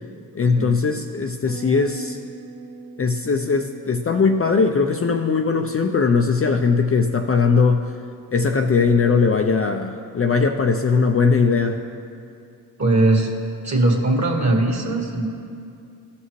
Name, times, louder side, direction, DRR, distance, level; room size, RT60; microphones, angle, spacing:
voice 1, 0.3-2.2 3.0-7.9 8.3-11.8, left 5 dB, 30° left, 3 dB, 0.6 m, -19 dB
Bass guitar, 1.5-10.8, right 3 dB, 70° right, 1.4 m, -44 dB
voice 2, 12.8-13.3 13.6-15.3, right 2 dB, 35° right, 1 dB, 2.0 m, -19 dB
16.0 x 5.8 x 3.2 m, 2.4 s
supercardioid pair, 45°, 46 cm